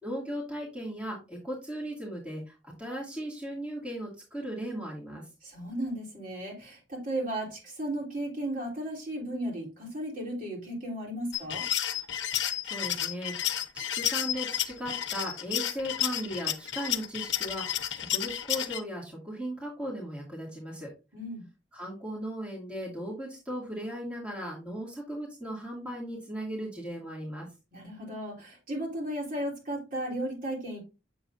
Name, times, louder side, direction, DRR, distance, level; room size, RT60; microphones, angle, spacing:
voice 1, 0.0-5.3 12.4-20.9 21.7-27.5, equal, 5° right, -4 dB, 2.4 m, -37 dB
voice 2, 5.4-11.7 21.1-21.4 27.7-30.8, right 1 dB, 45° right, -2 dB, 3.6 m, -35 dB
sound 1, 11.3-18.8, left 11 dB, 70° left, 0.8 m, -31 dB
7.7 x 7.0 x 2.6 m, 0.28 s
head